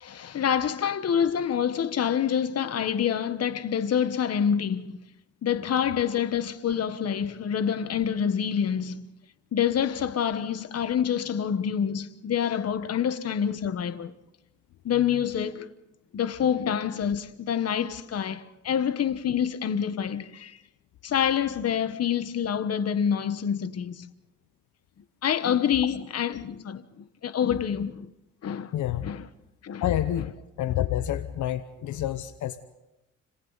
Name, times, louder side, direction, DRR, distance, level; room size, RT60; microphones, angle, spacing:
voice 1, 0.0-5.0 5.4-9.1 9.5-14.1 14.8-15.7 16.1-20.6 21.0-24.1 25.2-28.1 28.4-28.7 29.0-29.3 29.6-29.9 30.2-30.3, left 8 dB, 55° left, 1.3 m, -27 dB
voice 2, 28.7-29.1 29.8-30.3 30.6-32.6, left 12 dB, 75° left, 1.0 m, -28 dB
30.0 x 27.0 x 4.1 m
cardioid pair, 90°, 30 cm